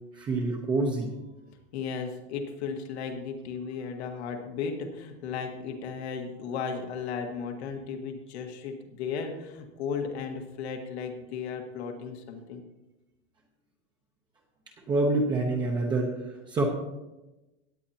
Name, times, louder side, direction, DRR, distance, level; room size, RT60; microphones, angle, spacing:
voice 1, 0.1-1.1 14.9-16.1 16.5-16.6, right 2 dB, 15° right, 0 dB, 0.8 m, -26 dB
voice 2, 1.7-12.6, left 6 dB, 70° left, 4 dB, 1.7 m, -35 dB
17.0 x 10.0 x 2.9 m, 1.0 s
supercardioid pair, 180°, 33 cm